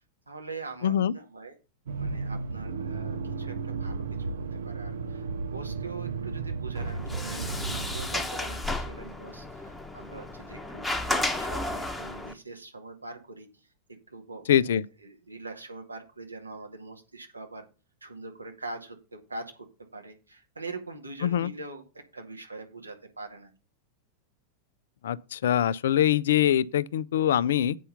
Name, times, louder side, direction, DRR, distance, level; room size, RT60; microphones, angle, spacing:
voice 1, 0.3-1.5 2.0-5.2 5.5-13.7 14.1-17.7 18.0-21.8 22.1-23.5, right 3 dB, 80° right, 2.0 m, -43 dB
voice 2, 0.8-1.1 14.5-14.8 21.2-21.5 25.0-27.8, left 10 dB, 60° left, 0.4 m, -23 dB
Accelerating revving vroom, 1.9-8.1, right 4 dB, 65° right, 0.8 m, -34 dB
Sliding door, 6.7-12.3, left 2 dB, 5° left, 1.1 m, -33 dB
8.4 x 5.6 x 6.8 m
figure-of-eight pair, 90°, 0 cm